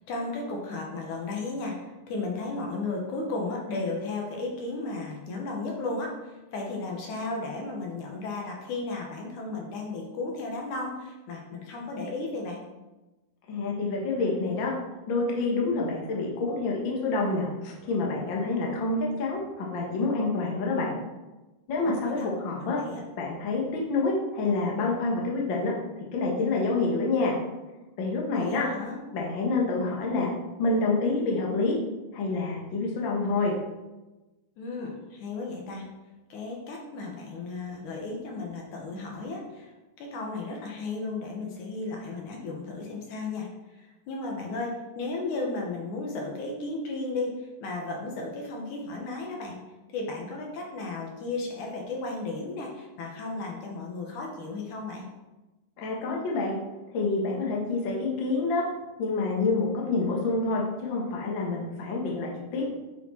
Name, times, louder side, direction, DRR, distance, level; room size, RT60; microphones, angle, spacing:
voice 1, 0.0-12.6 21.9-22.3 22.6-23.0 28.3-29.0 34.6-35.8 36.3-49.6 49.9-55.1, left 3 dB, 70° left, 0 dB, 2.5 m, -34 dB
voice 2, 13.5-14.7 15.1-21.0 21.7-22.8 23.2-25.7 26.1-27.4 28.0-28.6 29.1-30.3 30.6-31.8 32.1-33.6 55.8-56.6 56.9-58.6 59.0-62.7, left 3 dB, 50° left, -2 dB, 1.6 m, -27 dB
9.1 x 5.1 x 4.5 m, 1.1 s
omnidirectional pair, 3.9 m